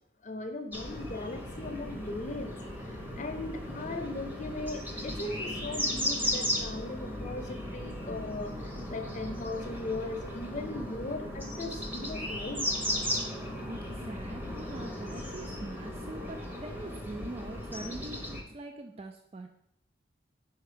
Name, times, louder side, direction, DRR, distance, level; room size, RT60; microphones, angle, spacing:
voice 1, 0.2-12.7, left 2 dB, 40° left, 5 dB, 0.6 m, -38 dB
sound 1, 0.7-18.4, left 1 dB, 10° right, 0.8 m, -36 dB
voice 2, 13.7-19.5, right 2 dB, 30° right, 5 dB, 0.3 m, -43 dB
5.7 x 4.4 x 4.9 m, 0.73 s
head